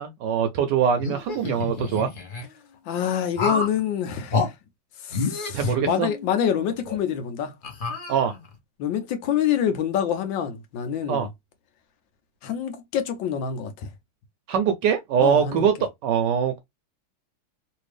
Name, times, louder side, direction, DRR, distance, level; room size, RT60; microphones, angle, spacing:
voice 1, 0.0-2.1 5.5-6.1 8.1-8.3 11.1-11.3 14.5-16.6, right 7 dB, 75° right, 1.0 m, -23 dB
sound 1, 1.0-2.4 3.4-3.8 4.3-4.5 5.1-6.4 6.8-7.0 7.6-8.6, left 4 dB, 45° left, 0.6 m, -28 dB
voice 2, 2.9-4.5 5.0-7.5 8.8-11.3 12.4-13.9 15.2-15.7, left 8 dB, 75° left, 1.3 m, -26 dB
3.4 x 2.6 x 3.2 m
omnidirectional pair, 2.2 m